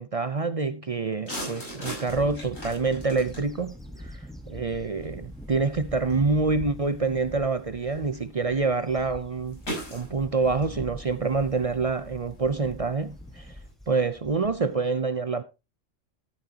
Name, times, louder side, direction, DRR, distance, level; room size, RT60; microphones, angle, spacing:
voice 1, 0.0-3.7 4.0-4.1 4.5-9.6 9.9-13.5 13.9-15.4, right 4 dB, 40° right, 0.5 m, -26 dB
sound 1, 1.2-13.7, equal, 85° left, 6.7 m, -43 dB
Bird / Wind, 2.1-14.9, equal, ahead, 1.1 m, -44 dB
13.0 x 8.9 x 2.8 m
omnidirectional pair, 1.3 m